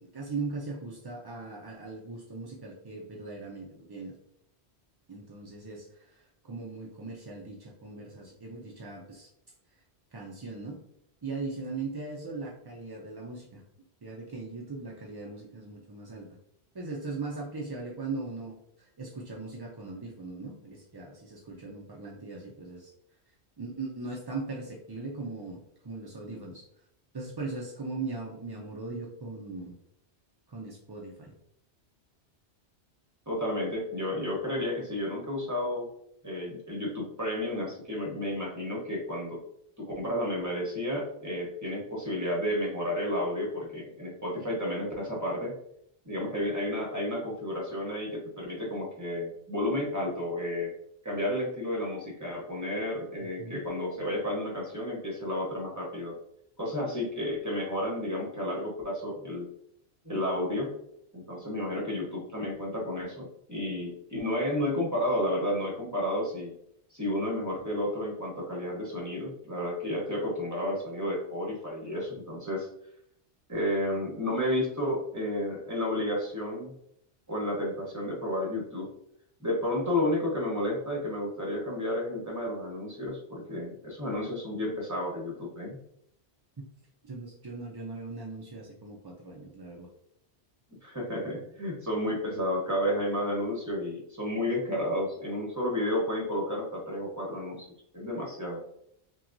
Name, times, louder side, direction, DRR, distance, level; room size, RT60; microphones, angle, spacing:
voice 1, 0.0-4.1 5.1-9.3 10.1-10.8 11.2-13.6 14.0-16.3 16.7-22.9 23.6-25.6 25.8-26.6 27.1-29.7 30.5-31.3 53.4-53.6 86.6-86.7 87.0-89.9, right 3 dB, 40° right, -2 dB, 0.3 m, -39 dB
voice 2, 33.3-35.9 36.2-39.4 39.8-45.5 46.0-50.7 51.0-56.2 56.6-59.5 60.0-60.7 61.1-66.5 66.9-72.7 73.5-76.7 77.3-78.9 79.4-85.8 90.8-97.7 97.9-98.6, left 1 dB, 15° right, -2 dB, 1.0 m, -31 dB
5.8 x 2.3 x 2.6 m, 0.74 s
omnidirectional pair, 1.1 m